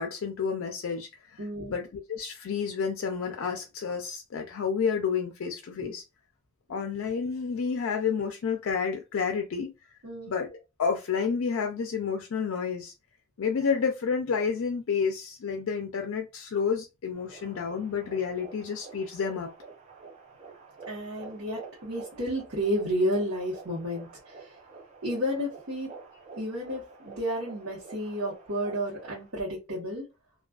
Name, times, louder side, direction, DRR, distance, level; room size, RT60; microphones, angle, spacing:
voice 1, 0.0-1.4 1.7-6.0 6.7-9.7 10.3-12.9 13.4-19.5, left 6 dB, 70° left, 0.4 m, -30 dB
voice 2, 1.4-1.8 10.0-10.3 20.9-24.6 25.0-25.9 26.3-30.0, equal, 75° right, 1.0 m, -31 dB
sound 1, 17.1-29.3, right 4 dB, 30° right, 0.5 m, -49 dB
2.3 x 2.3 x 2.3 m
head